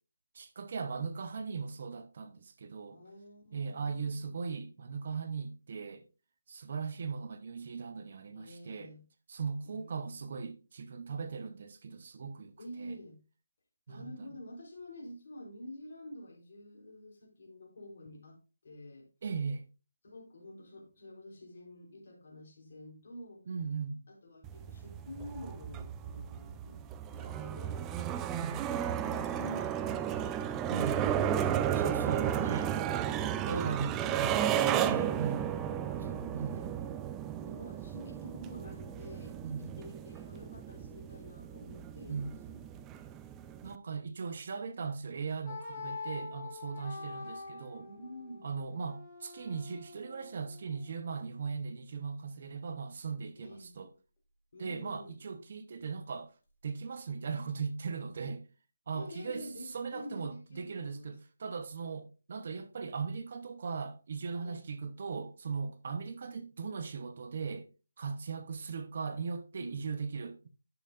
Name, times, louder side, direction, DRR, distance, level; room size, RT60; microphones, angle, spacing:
voice 1, 0.3-3.0 3.5-6.0 6.5-8.9 9.3-12.5 12.8-13.0 13.9-14.3 19.2-19.6 23.5-24.1 28.3-28.7 30.7-31.1 31.7-32.7 33.4-35.5 36.3-36.7 39.4-39.8 42.1-42.3 43.6-47.9 48.4-53.9 54.6-56.3 56.6-58.4 58.9-67.7 68.0-70.5, right 5 dB, 40° right, 0.9 m, -38 dB
voice 2, 2.9-4.2 8.3-9.0 9.6-10.3 12.6-13.2 13.9-18.4 18.6-19.1 20.0-23.5 24.1-28.2 28.8-31.3 31.8-33.9 34.7-36.7 37.4-42.6 44.6-44.8 47.0-47.3 47.8-48.5 53.4-53.7 54.5-55.2 58.9-61.1 64.4-64.6 69.5-69.9, left 1 dB, 50° left, 3.8 m, -49 dB
sound 1, 24.4-43.7, right 10 dB, 10° right, 0.3 m, -34 dB
sound 2, 45.5-51.3, left 3 dB, 15° left, 2.2 m, -45 dB
10.5 x 7.6 x 2.5 m
hypercardioid pair, 170°, 0 cm